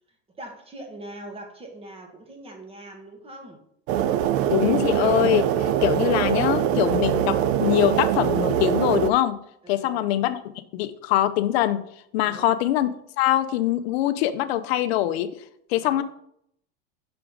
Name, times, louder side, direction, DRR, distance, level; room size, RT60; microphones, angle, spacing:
voice 1, 0.4-3.6 9.6-10.1 12.2-12.6 15.7-16.0, right 1 dB, 20° right, 2 dB, 1.3 m, -42 dB
sound 1, 3.9-9.1, right 10 dB, 45° right, 0.4 m, -23 dB
voice 2, 4.5-9.4 9.7-10.4 10.7-11.9 12.1-15.3 15.7-16.0, left 13 dB, 80° left, 10 dB, 0.6 m, -23 dB
6.1 x 4.6 x 3.7 m, 0.72 s
supercardioid pair, 140°, 31 cm